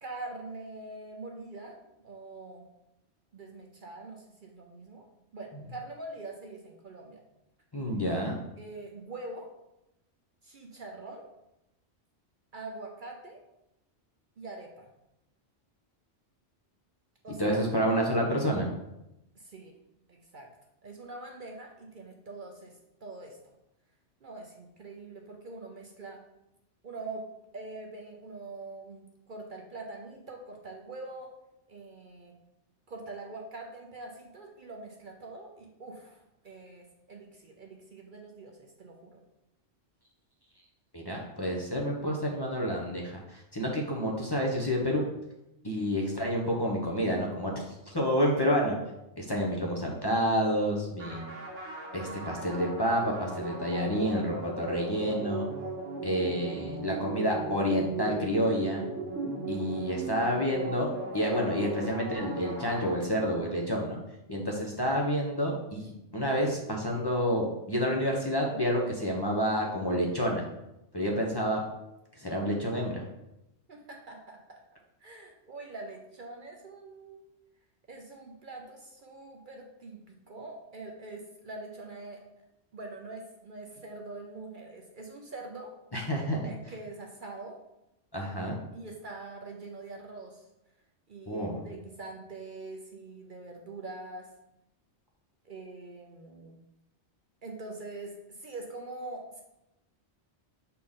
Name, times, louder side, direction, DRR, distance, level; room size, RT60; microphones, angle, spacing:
voice 1, 0.0-2.7 3.3-5.1 5.3-7.2 8.6-9.5 10.4-11.3 12.5-13.4 14.4-14.9 17.2-17.6 19.4-19.8 20.1-20.5 20.8-23.4 24.2-26.2 26.8-27.3 27.5-31.3 31.7-32.3 32.9-39.2 73.7-74.6 75.0-77.2 77.9-82.2 82.7-85.7 86.4-87.6 88.7-90.5 91.1-94.3 95.4-96.6 97.4-99.4, right 2 dB, 50° right, 1 dB, 0.8 m, -44 dB
voice 2, 7.7-8.3 17.4-18.7 40.9-45.0 45.6-48.8 49.2-51.3 51.9-55.4 56.0-58.8 59.5-64.0 64.3-70.4 70.9-71.6 72.2-73.0 85.9-86.5 88.1-88.6 91.3-91.6, equal, 25° left, -2 dB, 0.9 m, -29 dB
sound 1, 51.0-63.5, right 2 dB, 85° right, 1.8 m, -37 dB
6.4 x 4.3 x 3.7 m, 0.88 s
omnidirectional pair, 1.2 m